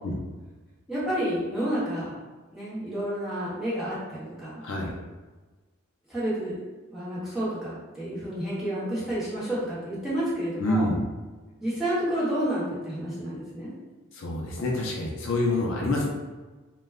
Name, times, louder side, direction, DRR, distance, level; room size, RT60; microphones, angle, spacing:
voice 1, 0.9-2.1 2.5-4.6 6.1-6.6 6.9-10.8 11.6-13.7, right 1 dB, ahead, -11 dB, 0.9 m, -30 dB
voice 2, 4.6-4.9 10.6-11.0 14.1-16.1, left 2 dB, 60° left, -2 dB, 0.4 m, -27 dB
2.2 x 2.1 x 3.4 m, 1.3 s
head